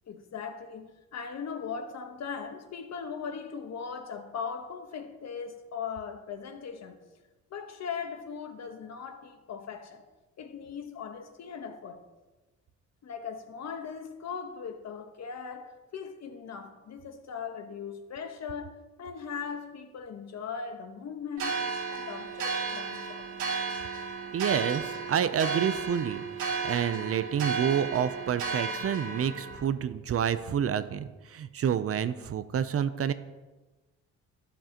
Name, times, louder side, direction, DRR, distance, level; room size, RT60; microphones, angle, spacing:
voice 1, 0.0-7.0 7.5-10.0 10.4-12.0 13.0-23.3, left 6 dB, 60° left, 1.2 m, -39 dB
sound 1, 21.4-29.6, right 5 dB, 80° right, 2.7 m, -33 dB
voice 2, 24.3-26.2 26.6-33.1, right 8 dB, 50° right, 0.6 m, -28 dB
12.5 x 10.5 x 3.0 m
cardioid pair, 90°, 30 cm